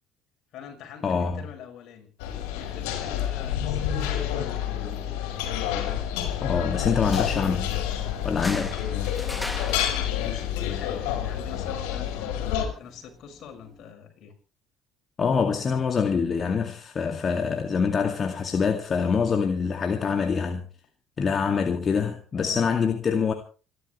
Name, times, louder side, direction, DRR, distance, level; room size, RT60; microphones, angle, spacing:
voice 1, 0.5-2.1 2.4-5.1 9.0-12.4 12.8-14.3 22.3-22.6, left 7 dB, 65° left, 5.8 m, -44 dB
voice 2, 1.0-1.4 6.4-7.7 8.2-8.8 15.2-20.7 21.2-23.3, left 6 dB, 40° left, 2.2 m, -25 dB
sound 1, 2.2-12.7, left 10 dB, 85° left, 4.9 m, -28 dB
sound 2, 6.9-13.9, left 1 dB, 10° left, 2.5 m, -42 dB
28.0 x 12.5 x 3.3 m
supercardioid pair, 85°, 0 cm